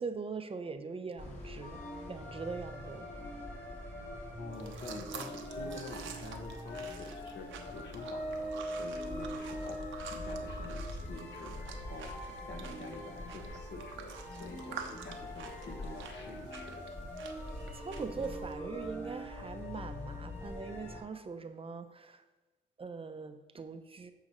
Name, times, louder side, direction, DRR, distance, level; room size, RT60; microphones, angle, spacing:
voice 1, 0.0-1.8 2.1-3.1 10.1-10.3 17.3-17.4 17.7-22.2 22.8-24.1, right 4 dB, 30° right, 9 dB, 0.6 m, -41 dB
sound 1, 1.2-21.0, equal, 35° left, 2.8 m, -42 dB
voice 2, 4.4-7.5 7.7-12.1 12.5-16.8, left 3 dB, 60° left, 4 dB, 1.5 m, -48 dB
sound 2, 4.5-18.5, right 7 dB, 75° right, 0.8 m, -49 dB
14.0 x 4.8 x 3.1 m, 1.2 s
cardioid pair, 90°, 20 cm